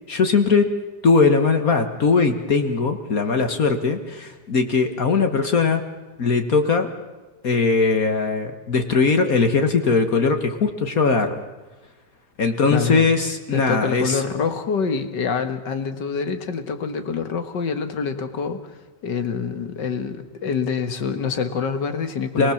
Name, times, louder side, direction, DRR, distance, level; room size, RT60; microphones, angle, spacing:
voice 1, 0.1-0.7 1.0-5.8 6.2-6.9 7.4-11.4 12.4-14.2 22.4-22.5, left 4 dB, 55° left, 6 dB, 1.8 m, -20 dB
voice 2, 12.7-13.1 13.5-22.5, left 5 dB, 75° left, 9 dB, 2.3 m, -26 dB
29.0 x 19.5 x 7.2 m, 1.2 s
omnidirectional pair, 1.9 m